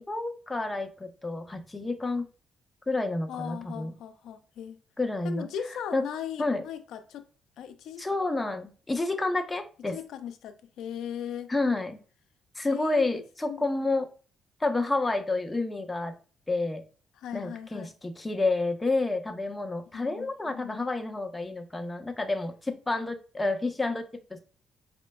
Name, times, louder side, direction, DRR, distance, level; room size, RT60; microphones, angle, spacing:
voice 1, 0.0-2.3 2.9-3.9 5.0-5.5 5.9-6.1 6.4-6.6 8.0-10.0 11.5-12.0 12.6-14.1 14.6-16.1 16.5-16.8 17.3-24.4, left 2 dB, 15° left, 0.5 m, -29 dB
voice 2, 3.3-4.8 5.2-7.2 7.6-8.0 8.3-8.4 9.9-11.5 12.7-13.8 17.2-17.9 19.9-20.9, left 9 dB, 80° left, 0.4 m, -38 dB
4.3 x 3.0 x 2.2 m
cardioid pair, 90°, 0 cm